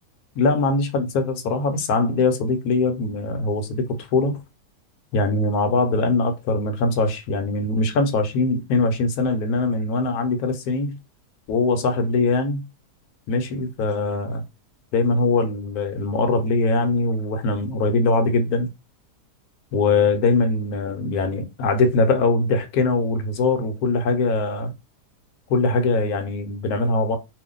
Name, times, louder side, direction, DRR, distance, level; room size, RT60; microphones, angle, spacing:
voice 1, 0.4-4.4 5.1-11.0 11.5-12.6 13.3-14.4 14.9-18.7 19.7-24.7 25.5-27.2, left 3 dB, 70° left, 1.1 m, -22 dB
2.6 x 2.6 x 3.6 m
omnidirectional pair, 1.8 m